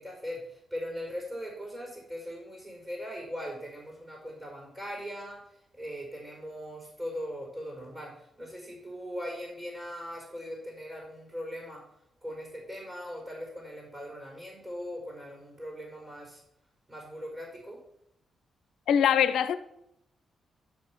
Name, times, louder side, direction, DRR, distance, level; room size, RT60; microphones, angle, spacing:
voice 1, 0.0-11.8 12.2-16.4 16.9-17.8, equal, 20° right, 5.0 m, -40 dB
voice 2, 18.9-19.6, left 8 dB, 75° left, 0.6 m, -22 dB
11.5 x 5.4 x 6.1 m
supercardioid pair, 50°, 0 cm